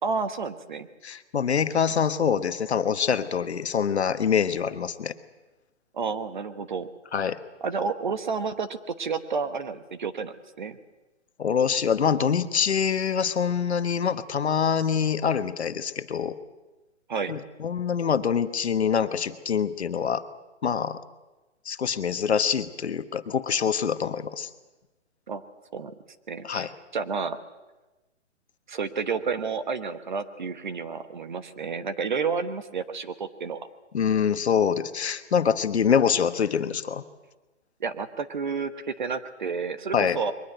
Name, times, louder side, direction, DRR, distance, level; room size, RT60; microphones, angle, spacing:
voice 1, 0.0-0.9 5.9-6.9 7.6-10.8 17.1-17.4 25.3-25.4 25.7-25.9 26.3-27.4 28.7-33.7 37.8-40.3, right 5 dB, 40° right, 11 dB, 1.2 m, -30 dB
voice 2, 1.0-5.1 7.1-7.4 11.4-16.4 17.3-20.2 20.6-21.0 21.6-24.5 26.4-26.7 33.9-37.0 39.9-40.2, left 7 dB, 65° left, 10 dB, 1.3 m, -25 dB
22.5 x 19.5 x 7.9 m, 1.1 s
hypercardioid pair, 180°, 36 cm